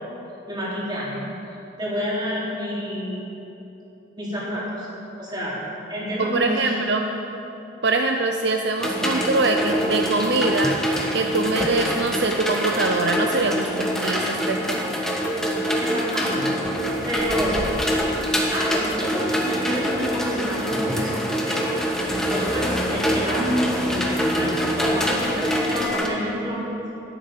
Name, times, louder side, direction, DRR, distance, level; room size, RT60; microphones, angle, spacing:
voice 1, 0.4-1.2 1.8-3.2 4.1-4.9 5.2-5.6 5.9-6.8 15.8-16.8 17.0-17.7 18.5-21.8 22.1-26.7, equal, 20° right, -7 dB, 3.5 m, -28 dB
voice 2, 6.2-7.0 7.8-10.8 11.1-14.8, right 3 dB, 60° right, 4 dB, 0.7 m, -23 dB
sound 1, 8.8-26.1, equal, 5° left, 1.2 m, -25 dB
13.0 x 11.5 x 5.9 m, 3.0 s
head